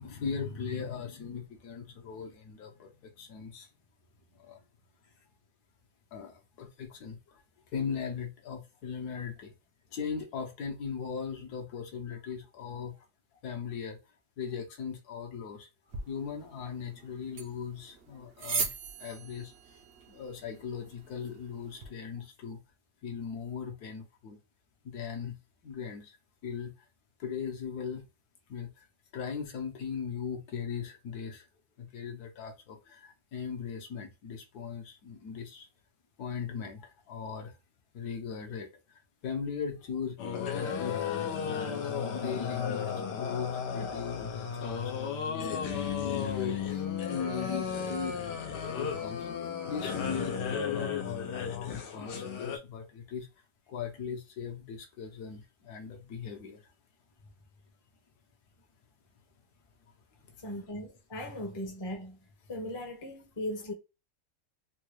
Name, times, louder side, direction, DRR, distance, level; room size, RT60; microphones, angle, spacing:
voice 1, 0.0-3.7 4.3-4.6 6.1-7.4 7.7-9.5 9.9-13.1 13.4-14.0 14.4-19.8 20.1-22.6 23.0-24.4 24.8-25.4 25.6-26.2 26.4-26.9 27.2-28.1 28.5-28.9 29.1-31.5 31.8-35.7 36.2-37.6 37.9-41.0 42.1-45.7 46.0-48.2 48.7-49.3 49.7-56.7 60.2-60.4, left 6 dB, 70° left, 1.2 m, -39 dB
sound 1, 15.9-21.9, right 5 dB, 60° right, 0.7 m, -40 dB
sound 2, 40.2-52.6, left 7 dB, 85° left, 1.4 m, -34 dB
voice 2, 60.4-62.2 62.5-63.7, left 1 dB, 25° left, 0.6 m, -38 dB
3.6 x 2.3 x 3.0 m
omnidirectional pair, 1.8 m